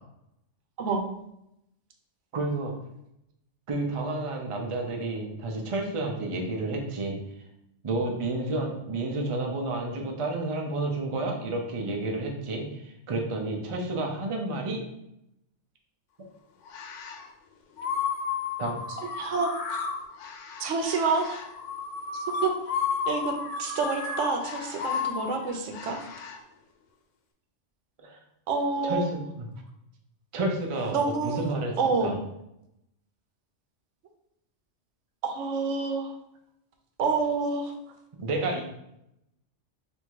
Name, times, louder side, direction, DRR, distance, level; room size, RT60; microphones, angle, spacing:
voice 1, 2.3-2.7 3.7-7.2 7.8-14.8 18.6-18.8 28.0-28.2 28.8-29.5 30.3-32.1 38.2-38.6, right 2 dB, 35° right, 1 dB, 0.5 m, -30 dB
sound 1, 16.7-17.3 17.8-26.4, left 6 dB, 80° left, 1.0 m, -33 dB
voice 2, 19.0-19.5 20.6-21.4 22.1-22.5 23.1-23.3 23.6-26.0 28.5-29.0 30.9-31.4 31.8-32.2 35.2-36.1 37.0-37.7, right 4 dB, 80° right, 4 dB, 1.0 m, -28 dB
3.5 x 2.6 x 4.6 m, 0.82 s
omnidirectional pair, 1.3 m